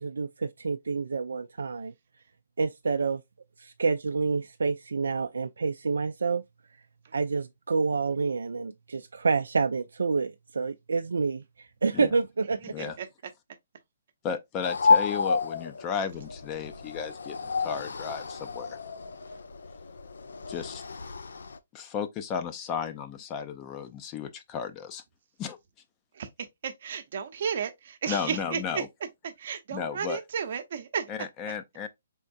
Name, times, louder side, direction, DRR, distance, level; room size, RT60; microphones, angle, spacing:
voice 1, 0.0-1.9 2.6-3.2 3.6-6.4 7.1-12.6, right 4 dB, 85° right, 0.3 m, -28 dB
voice 2, 14.2-18.8 20.5-20.8 21.7-25.0 25.4-25.6 28.1-28.9 29.7-30.2 31.1-31.9, left 7 dB, 25° left, 0.5 m, -34 dB
sound 1, 14.6-21.6, left 4 dB, 80° left, 0.5 m, -30 dB
voice 3, 26.1-28.8 29.4-31.1, right 7 dB, 55° right, 0.8 m, -33 dB
4.3 x 3.6 x 2.6 m
hypercardioid pair, 150°, 0 cm